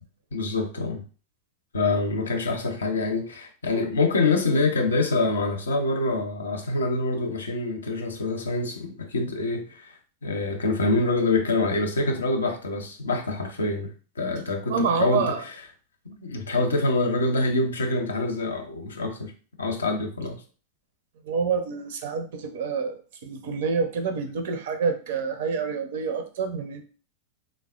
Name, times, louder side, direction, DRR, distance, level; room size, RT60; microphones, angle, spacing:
voice 1, 0.3-1.0 1.7-9.9 10.2-15.4 16.1-19.3 19.6-20.4, left 3 dB, 70° left, 0.5 m, -25 dB
voice 2, 14.7-15.4 21.2-26.8, right 5 dB, 55° right, 0.4 m, -27 dB
3.4 x 2.1 x 2.3 m
figure-of-eight pair, 90°, 0 cm